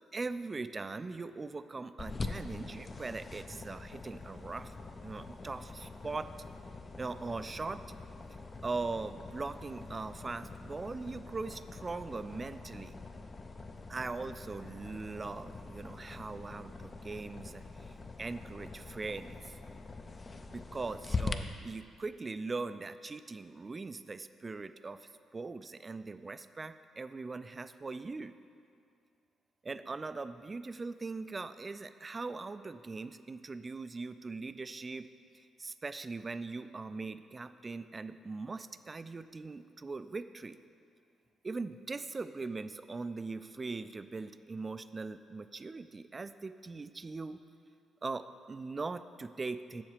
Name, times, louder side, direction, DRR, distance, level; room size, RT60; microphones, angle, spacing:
voice 1, 0.0-4.7 5.0-6.3 7.0-7.8 8.6-13.0 13.9-19.6 20.5-28.3 29.6-35.1 35.3-40.6 41.4-47.4 48.0-49.8, right 3 dB, 30° right, 12 dB, 0.3 m, -40 dB
sound 1, 2.0-21.3, left 3 dB, 30° left, 0.5 m, -44 dB
7.3 x 7.0 x 4.9 m, 2.3 s
cardioid pair, 90°, 0 cm